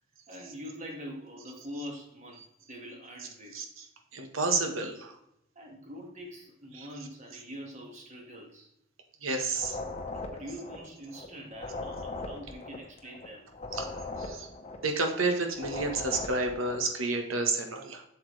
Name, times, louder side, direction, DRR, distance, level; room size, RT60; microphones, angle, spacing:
voice 1, 0.3-3.6 5.6-8.7 10.3-13.5, equal, 35° right, 0 dB, 2.0 m, -44 dB
voice 2, 4.1-5.1 6.7-6.9 9.2-9.8 13.7-13.9 14.2-14.5 14.8-18.0, right 3 dB, 75° right, 4 dB, 1.4 m, -30 dB
sound 1, 9.5-16.9, left 2 dB, 30° left, 1.0 m, -39 dB
7.9 x 7.1 x 3.4 m, 0.79 s
head